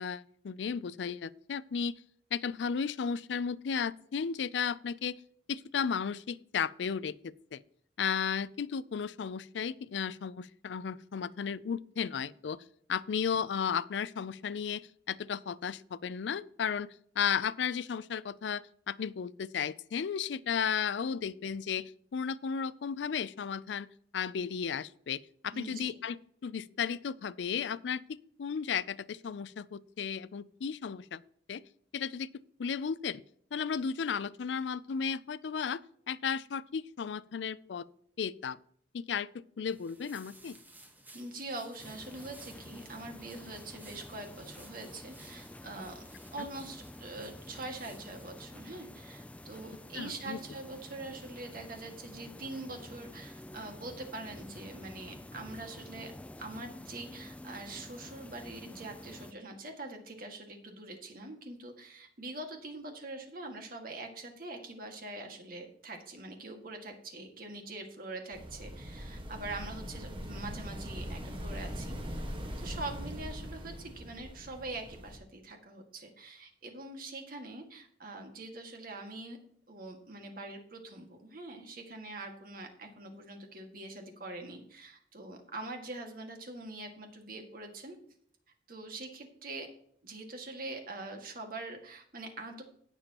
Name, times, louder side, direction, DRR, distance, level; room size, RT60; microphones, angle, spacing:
voice 1, 0.0-2.0 2.3-5.2 5.5-7.6 8.0-12.6 12.9-23.9 24.1-31.2 31.5-31.6 31.9-32.3 32.6-33.2 33.5-37.9 38.2-38.6 38.9-40.6 46.4-46.5 50.0-50.4, left 7 dB, 80° left, 18 dB, 0.4 m, -34 dB
voice 2, 25.5-25.9 41.1-46.0 46.3-56.1 56.4-72.0 72.6-79.4 79.7-88.0 88.7-89.7 90.0-92.6, right 2 dB, 55° right, 3 dB, 1.9 m, -44 dB
sound 1, 39.7-48.3, right 1 dB, 10° right, 1.2 m, -57 dB
sound 2, 41.8-59.3, left 1 dB, 10° left, 0.3 m, -49 dB
sound 3, 68.3-75.2, equal, 30° right, 1.5 m, -41 dB
17.5 x 7.0 x 2.9 m, 0.62 s
head